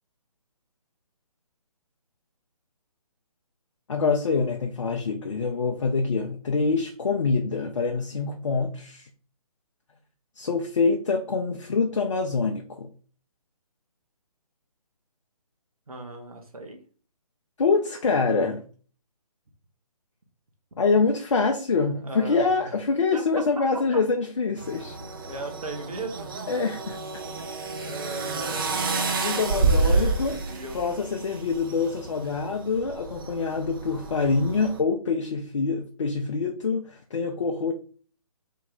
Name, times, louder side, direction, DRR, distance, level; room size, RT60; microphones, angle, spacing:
voice 1, 3.9-9.1 10.4-12.9 17.6-18.6 20.8-25.0 26.5-27.0 29.2-30.4 30.7-37.7, left 4 dB, 50° left, 0.5 m, -25 dB
voice 2, 15.9-16.8 22.0-22.8 23.1-23.6 23.9-24.0 24.9-26.3 27.7-29.0 29.5-30.8, right 1 dB, 70° right, 1.0 m, -37 dB
sound 1, 24.6-34.8, right 3 dB, 35° right, 0.6 m, -29 dB
2.9 x 2.9 x 3.7 m
figure-of-eight pair, 140°, 20 cm